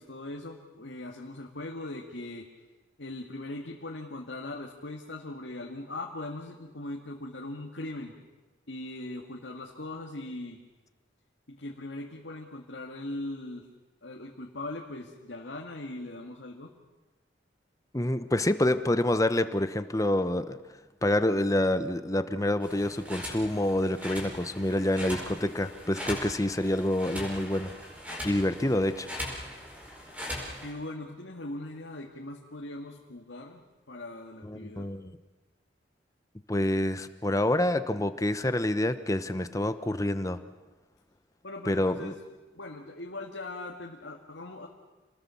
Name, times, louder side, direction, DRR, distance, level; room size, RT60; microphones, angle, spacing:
voice 1, 0.0-2.5 3.0-8.1 8.7-10.6 11.5-13.7 14.0-16.7 30.6-34.9 41.4-42.2 42.5-44.7, left 2 dB, 75° left, 0 dB, 2.1 m, -40 dB
voice 2, 17.9-20.6 21.0-27.7 28.2-29.1 34.4-35.1 36.5-40.4 41.7-42.1, left 1 dB, 20° left, 11 dB, 1.0 m, -27 dB
sound 1, 22.6-30.7, left 1 dB, 10° right, 4.7 m, -40 dB
28.0 x 20.0 x 7.1 m, 1.2 s
head